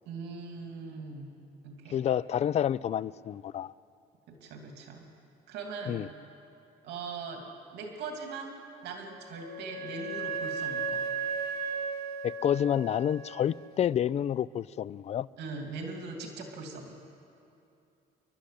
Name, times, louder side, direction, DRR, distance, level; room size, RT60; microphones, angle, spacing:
voice 1, 0.1-1.3 1.6-2.0 4.3-5.1 5.5-6.1 6.8-11.0 15.4-16.9, right 4 dB, 80° right, 2.7 m, -40 dB
voice 2, 1.9-3.7 5.9-6.1 12.2-15.3, left 10 dB, 40° left, 0.4 m, -29 dB
Wind instrument woodwind instrument, 9.0-13.7, right 5 dB, 65° right, 1.4 m, -36 dB
29.5 x 11.5 x 8.5 m
cardioid pair, 110°, 17 cm